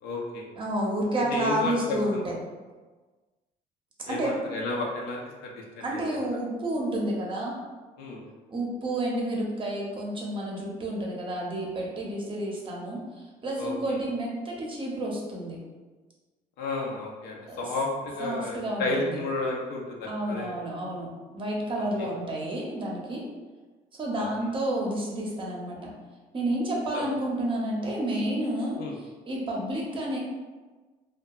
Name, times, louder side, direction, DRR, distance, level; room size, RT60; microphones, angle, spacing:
voice 1, 0.0-0.5 1.2-2.2 4.1-6.2 8.0-8.2 13.6-14.0 16.6-20.6 22.0-22.1 24.1-24.3 26.9-27.0 28.8-28.9, left 2 dB, 80° left, -1 dB, 0.6 m, -32 dB
voice 2, 0.6-2.3 4.1-4.4 5.8-7.6 8.5-13.0 13.4-15.6 17.5-17.6 18.2-19.2 20.1-23.2 24.0-25.9 26.3-28.8 29.3-30.2, right 1 dB, 30° right, -2 dB, 0.6 m, -30 dB
2.7 x 2.2 x 2.3 m, 1.3 s
cardioid pair, 110°, 17 cm